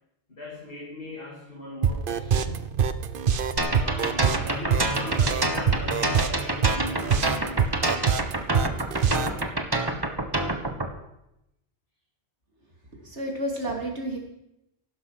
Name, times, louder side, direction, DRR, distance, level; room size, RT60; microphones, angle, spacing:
voice 1, 0.3-2.7 3.8-8.1, left 1 dB, 55° left, -2 dB, 2.8 m, -38 dB
sound 1, 1.8-9.4, right 7 dB, 55° right, 0.9 m, -24 dB
sound 2, 3.6-10.9, right 2 dB, 20° right, 1.4 m, -27 dB
voice 2, 12.9-14.2, right 1 dB, 85° right, 0 dB, 3.7 m, -31 dB
15.0 x 12.0 x 6.0 m, 0.84 s
omnidirectional pair, 1.1 m